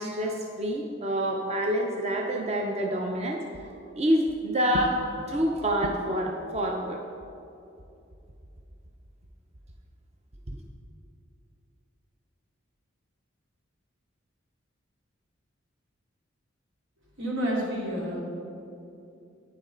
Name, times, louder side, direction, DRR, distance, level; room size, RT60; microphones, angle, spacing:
voice 1, 0.0-3.4 4.0-5.0 5.3-7.0, equal, 35° right, 1 dB, 0.6 m, -27 dB
voice 2, 17.2-18.2, equal, 85° right, -4 dB, 2.6 m, -29 dB
11.0 x 9.1 x 3.8 m, 2.7 s
head